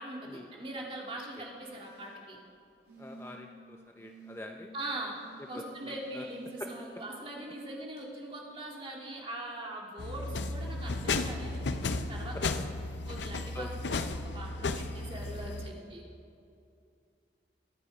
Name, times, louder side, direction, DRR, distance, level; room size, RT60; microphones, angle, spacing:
voice 1, 0.0-2.4 4.7-5.2 5.5-12.4 13.0-13.7 14.3-16.0, right 1 dB, 30° right, -2 dB, 2.0 m, -41 dB
sound 1, 1.6-2.2 2.9-3.6 4.0-4.4 5.1-6.7 8.0-8.1, right 2 dB, 70° right, 3.3 m, -52 dB
voice 2, 3.0-4.7 5.5-6.3 6.6-6.7 13.5-14.0, left 1 dB, 15° left, 4 dB, 0.5 m, -44 dB
sound 2, 10.0-15.7, left 3 dB, 80° left, 0.6 m, -34 dB
22.5 x 8.5 x 4.9 m, 2.5 s
head